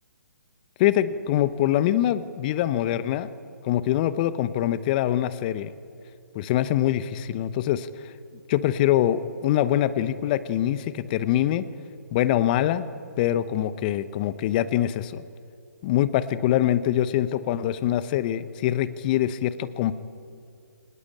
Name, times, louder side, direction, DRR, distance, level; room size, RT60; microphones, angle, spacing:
voice 1, 0.8-3.3 3.6-5.7 6.3-7.9 8.5-11.6 12.1-12.9 13.2-15.2 15.8-19.9, left 12 dB, 30° left, 15 dB, 0.9 m, -24 dB
23.0 x 19.5 x 8.6 m, 2.4 s
figure-of-eight pair, 135°, 9 cm